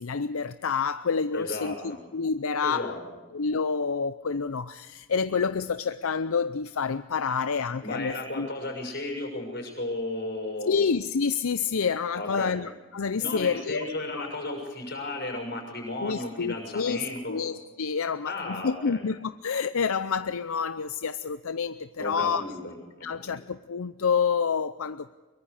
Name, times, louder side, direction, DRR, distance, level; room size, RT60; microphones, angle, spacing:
voice 1, 0.0-2.9 3.3-8.5 10.7-14.2 16.0-22.4 23.0-25.1, left 5 dB, 75° left, 12 dB, 0.6 m, -28 dB
voice 2, 1.3-2.0 2.6-3.0 7.8-10.8 12.1-12.6 13.2-17.4 18.2-19.0 22.0-23.3, left 2 dB, 45° left, 2 dB, 6.5 m, -34 dB
23.5 x 23.0 x 5.0 m, 1.2 s
head